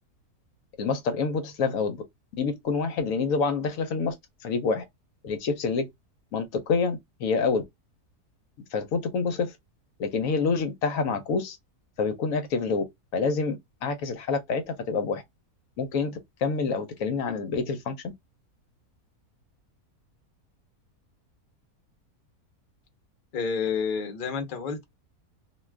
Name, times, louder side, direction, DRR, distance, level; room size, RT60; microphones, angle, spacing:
voice 1, 0.8-2.0 2.4-4.1 4.4-4.8 5.2-5.8 6.3-7.6 8.7-9.5 10.0-11.6 12.0-12.8 13.1-13.6 13.8-15.2 15.8-17.9, left 4 dB, 70° left, 0.9 m, -27 dB
voice 2, 23.3-24.8, left 5 dB, 50° left, 0.6 m, -29 dB
2.5 x 2.3 x 3.2 m
omnidirectional pair, 1.6 m